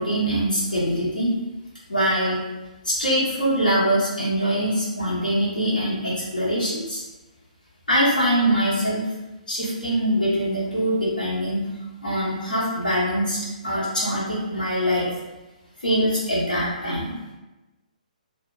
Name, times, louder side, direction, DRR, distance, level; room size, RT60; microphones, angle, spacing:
voice 1, 0.0-1.3 1.9-2.4 2.8-7.0 7.9-9.0 9.5-11.7 12.0-15.1 15.8-17.1, equal, 80° left, -8 dB, 1.2 m, -23 dB
2.8 x 2.0 x 3.3 m, 1.1 s
figure-of-eight pair, 130°, 4 cm